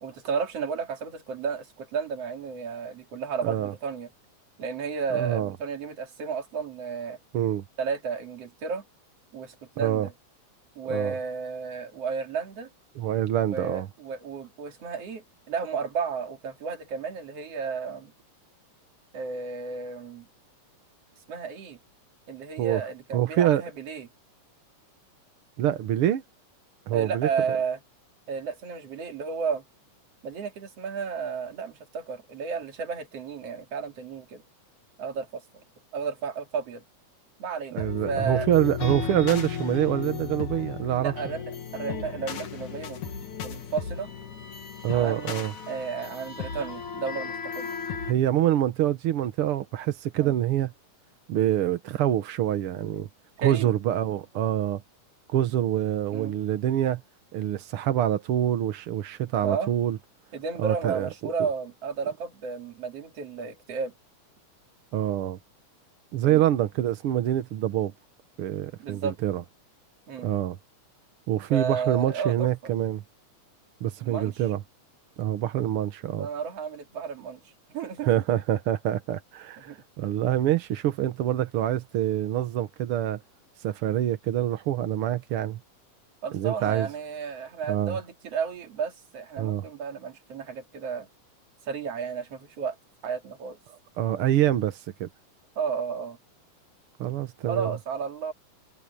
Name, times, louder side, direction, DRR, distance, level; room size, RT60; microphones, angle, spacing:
voice 1, 0.0-4.1 4.6-7.2 7.8-8.8 9.3-10.1 10.8-12.7 13.5-18.1 19.1-20.3 21.3-21.8 22.3-24.1 26.9-27.8 28.3-29.6 30.2-34.4 35.0-35.4 35.9-36.8 37.4-38.5 41.0-43.1 43.4-44.1 44.9-47.8 50.1-50.3 53.4-53.7 56.1-56.4 59.4-59.7 60.3-63.9 66.3-66.4 68.8-69.1 70.1-70.3 71.5-72.7 74.0-74.4 76.2-77.4 77.7-78.1 79.7-79.8 86.2-91.1 91.7-92.8 93.0-93.6 95.6-96.2 97.5-98.3, right 6 dB, 50° right, 3.5 m, -32 dB
voice 2, 3.4-3.7 5.1-5.5 7.3-7.6 9.8-10.1 10.8-11.1 13.0-13.9 22.6-22.8 23.1-23.6 25.6-26.2 26.9-27.3 37.7-41.1 44.8-45.5 48.1-50.7 51.3-53.1 53.4-54.8 55.3-57.0 57.3-60.0 60.6-61.5 64.9-65.4 66.1-67.9 68.4-69.4 70.2-70.6 71.3-73.0 73.8-74.6 75.2-76.3 78.0-83.2 83.6-85.6 86.3-86.9 87.7-88.0 89.4-89.6 94.0-95.1 97.0-97.7, right 12 dB, 70° right, 1.3 m, -26 dB
sound 1, 37.8-48.1, left 6 dB, 65° left, 3.9 m, -35 dB
omnidirectional pair, 3.8 m